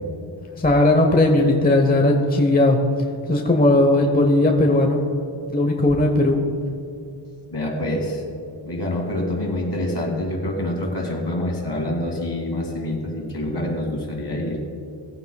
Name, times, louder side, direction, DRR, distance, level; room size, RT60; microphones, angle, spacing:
voice 1, 0.6-2.8 3.3-5.0 5.5-6.4, left 2 dB, 20° left, 2 dB, 0.9 m, -17 dB
voice 2, 7.5-8.2 8.7-14.6, left 1 dB, 55° left, 1 dB, 2.4 m, -26 dB
18.5 x 9.0 x 2.3 m, 2.6 s
cardioid pair, 60°, 49 cm